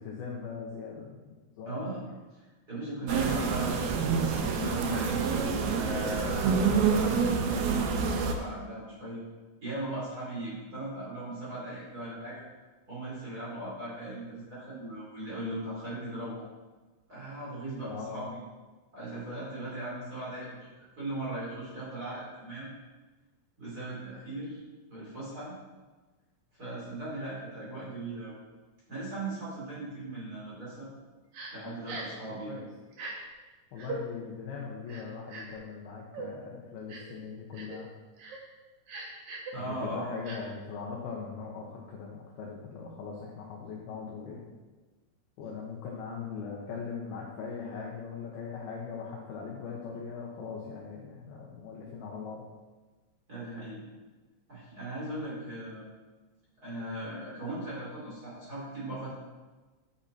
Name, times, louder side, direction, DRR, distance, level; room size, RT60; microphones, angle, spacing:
voice 1, 0.0-1.9 17.8-18.2 32.3-32.7 33.7-37.9 39.5-44.4 45.4-52.4, left 5 dB, 70° left, -2 dB, 2.4 m, -40 dB
voice 2, 1.6-2.1 2.3-5.2 5.7-7.6 7.9-9.2 9.6-12.4 12.9-16.4 17.1-18.4 18.9-22.7 23.6-24.6 24.9-25.6 26.5-28.3 28.9-30.9 31.5-32.5 39.5-40.2 53.3-53.8 54.5-55.9 56.6-59.2, right 1 dB, 20° right, -8 dB, 4.2 m, -38 dB
sound 1, 3.1-8.3, right 5 dB, 90° right, 2.1 m, -27 dB
Crying sobbing, 31.3-31.5 31.9-32.2 32.9-33.1 33.8-34.0 34.9-35.6 36.1-36.3 36.9-37.1 37.5-37.8 38.2-38.4 38.9-39.5 40.2-40.4, right 4 dB, 60° right, 2.1 m, -40 dB
10.0 x 9.9 x 4.5 m, 1.3 s
omnidirectional pair, 5.9 m